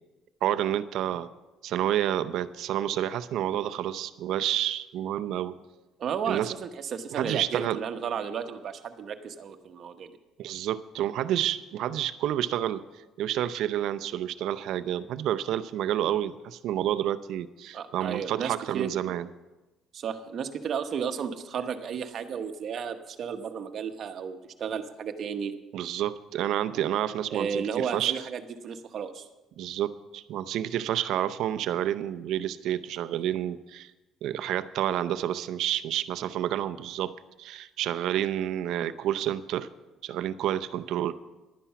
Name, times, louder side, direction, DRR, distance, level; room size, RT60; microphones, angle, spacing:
voice 1, 0.4-1.3 1.6-5.6 6.3-6.5 7.1-7.8 10.4-12.8 13.2-19.3 25.7-28.2 29.6-33.9 34.2-37.1 37.4-39.7 40.0-41.1, right 11 dB, 70° right, 12 dB, 0.6 m, -29 dB
voice 2, 6.0-10.1 17.7-18.9 19.9-25.5 27.3-29.3, right 7 dB, 50° right, 7 dB, 1.0 m, -33 dB
11.5 x 10.0 x 5.9 m, 1.1 s
cardioid pair, 125°, 0 cm